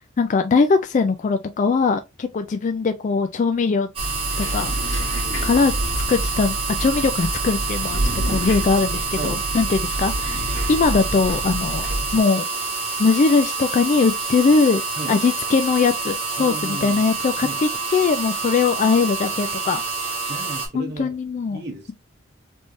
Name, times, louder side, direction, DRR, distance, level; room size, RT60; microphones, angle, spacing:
voice 1, 0.2-3.9 4.4-4.8 5.4-5.7 6.1-11.9 12.1-12.5 13.0-14.8 15.1-19.8 20.7-21.6, left 4 dB, 35° left, 0.3 m, -21 dB
sound 1, 3.9-20.7, right 4 dB, 30° right, 1.6 m, -27 dB
sound 2, 4.0-12.2, right 1 dB, 60° left, 1.5 m, -28 dB
voice 2, 5.1-5.4 8.0-8.5 9.2-9.4 15.0-15.3 16.4-17.0 17.4-17.6 20.3-21.2 21.5-21.9, right 2 dB, 55° right, 0.9 m, -34 dB
3.4 x 3.2 x 2.6 m
head